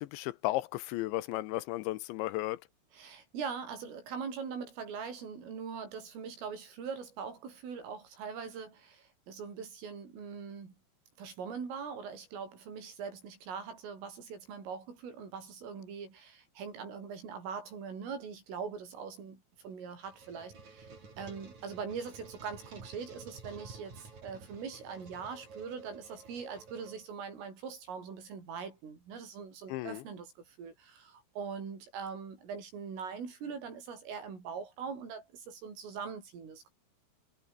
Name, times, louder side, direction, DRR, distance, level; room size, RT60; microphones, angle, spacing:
voice 1, 0.0-2.6 29.7-30.0, left 17 dB, 80° left, 3.0 m, -34 dB
voice 2, 2.9-10.8 11.2-36.7, right 6 dB, 90° right, 8.9 m, -42 dB
sound 1, 19.6-27.4, right 4 dB, 35° right, 6.7 m, -52 dB
omnidirectional pair, 5.6 m